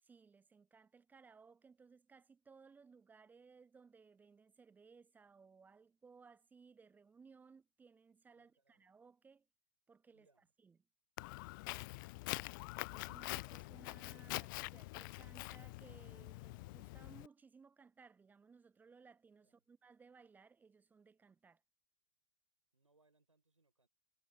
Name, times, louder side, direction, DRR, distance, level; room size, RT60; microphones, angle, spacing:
voice 1, 0.0-9.5 9.9-10.3 10.6-10.8 12.9-21.6, right 5 dB, 10° right, 0.6 m, -63 dB
voice 2, 8.4-8.9 10.1-10.5 12.0-12.6 19.4-19.6 22.7-23.9, right 3 dB, 85° right, 6.4 m, -77 dB
Walk footsteps, 11.2-17.3, left 23 dB, 40° left, 0.4 m, -45 dB
figure-of-eight pair, 95°, 16 cm